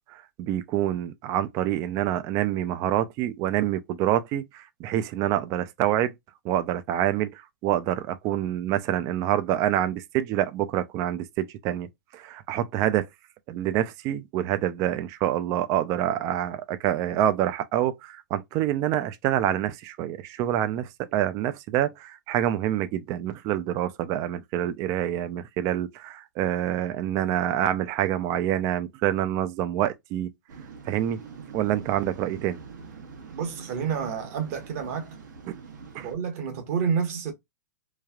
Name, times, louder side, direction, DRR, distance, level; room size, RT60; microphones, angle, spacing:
voice 1, 0.1-6.1 6.4-13.1 13.5-30.3 30.9-31.2 31.5-32.6 35.5-35.6 35.9-36.1, right 12 dB, 35° right, 0.3 m, -27 dB
Waves surf, 30.5-36.2, right 5 dB, 75° right, 1.0 m, -44 dB
voice 2, 33.3-35.2 36.0-37.3, right 6 dB, 55° right, 1.0 m, -29 dB
3.2 x 2.3 x 2.2 m
hypercardioid pair, 120°, 10 cm